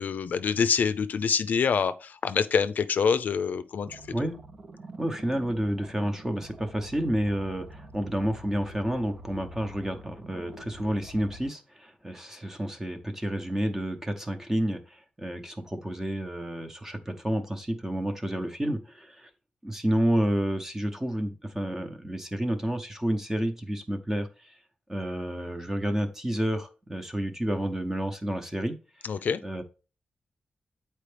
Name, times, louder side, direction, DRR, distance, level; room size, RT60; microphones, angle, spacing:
voice 1, 0.0-4.0 29.0-29.4, left 6 dB, 65° left, 0.5 m, -26 dB
sound 1, 3.9-11.4, right 1 dB, 35° right, 0.7 m, -46 dB
voice 2, 5.0-19.3 19.6-24.6 24.9-28.8 29.4-29.6, right 1 dB, 10° right, 0.9 m, -30 dB
8.8 x 4.4 x 3.4 m
wide cardioid pair, 125°, 3 cm